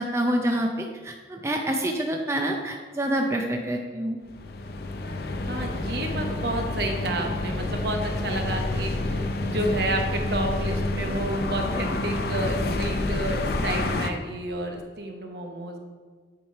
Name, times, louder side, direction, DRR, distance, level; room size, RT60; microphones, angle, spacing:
voice 1, 0.0-4.2, right 1 dB, 15° right, 2 dB, 0.5 m, -27 dB
sound 1, 4.3-14.1, left 2 dB, 55° left, 0.5 m, -28 dB
voice 2, 5.5-13.4 13.6-15.8, right 2 dB, 60° right, 3 dB, 1.0 m, -30 dB
9.5 x 4.9 x 4.5 m, 1.5 s
head